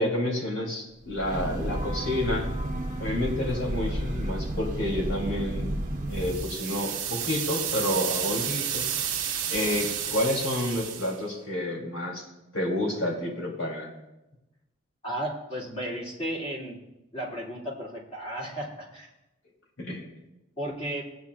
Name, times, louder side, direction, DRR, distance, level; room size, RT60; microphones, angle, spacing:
voice 1, 0.0-2.5 3.0-5.7 6.1-8.9 9.5-12.2 12.5-13.9 19.8-20.0, left 1 dB, 75° left, -1 dB, 2.9 m, -29 dB
Breathing / Train, 1.0-6.6, right 1 dB, 35° right, 1.1 m, -32 dB
sound 1, 6.1-11.2, right 9 dB, 75° right, 1.1 m, -31 dB
voice 2, 15.0-16.8 17.1-19.1 20.6-21.0, right 1 dB, 30° left, -5 dB, 2.5 m, -34 dB
17.5 x 9.0 x 2.4 m, 0.96 s
head